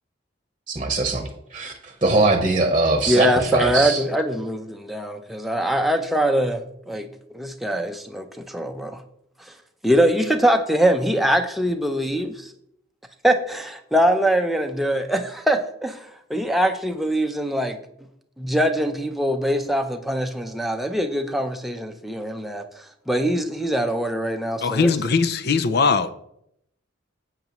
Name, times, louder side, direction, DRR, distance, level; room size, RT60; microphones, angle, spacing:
voice 1, 0.7-4.0, right 2 dB, 25° right, 5 dB, 1.0 m, -22 dB
voice 2, 3.1-9.0 9.8-12.5 13.2-17.8 18.4-22.6 23.1-25.0, equal, ahead, 4 dB, 0.6 m, -23 dB
voice 3, 24.6-26.1, left 4 dB, 55° left, 12 dB, 0.6 m, -20 dB
10.5 x 8.0 x 3.1 m, 0.74 s
head